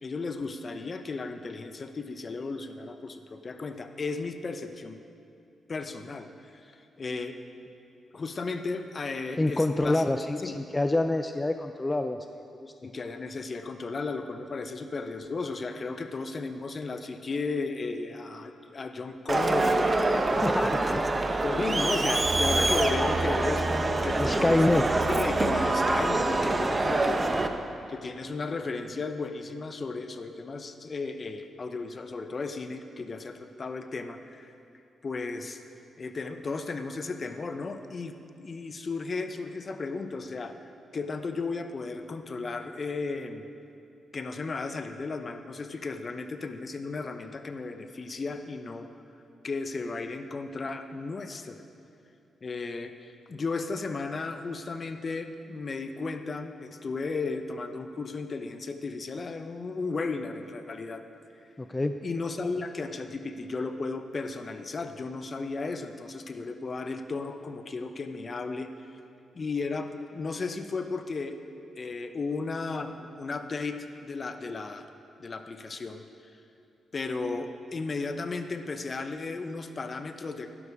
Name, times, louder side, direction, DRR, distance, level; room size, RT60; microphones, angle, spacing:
voice 1, 0.0-5.0 5.7-6.7 7.0-7.4 8.1-10.1 10.4-10.6 12.8-20.3 21.4-24.8 25.1-27.4 27.9-34.5 35.0-35.6 36.0-40.5 40.9-43.4 44.1-48.9 49.4-51.6 52.4-61.0 62.0-68.7 69.3-71.4 71.8-74.9 75.2-76.1 76.9-80.5, left 3 dB, 45° left, 8 dB, 0.9 m, -34 dB
voice 2, 9.4-12.2 12.6-12.7 20.3-21.0 24.2-25.0 61.6-62.0, left 2 dB, 20° left, 7 dB, 0.5 m, -26 dB
Crowd, 19.3-27.5, right 2 dB, 30° right, 0.9 m, -25 dB
11.5 x 11.0 x 4.9 m, 2.6 s
supercardioid pair, 55°, 0 cm